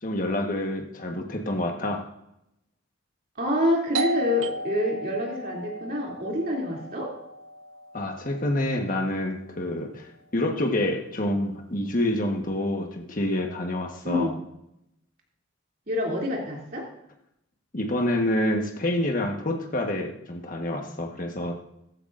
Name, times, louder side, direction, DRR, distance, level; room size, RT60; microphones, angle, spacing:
voice 1, 0.0-2.1 7.9-14.3 17.7-21.5, left 1 dB, 45° left, 3 dB, 1.4 m, -27 dB
voice 2, 3.4-7.1 14.0-14.3 15.9-16.8, left 1 dB, 50° right, -2 dB, 3.0 m, -27 dB
Doorbell, 3.9-9.3, right 2 dB, 85° right, 0.5 m, -35 dB
15.0 x 12.0 x 2.6 m, 0.83 s
head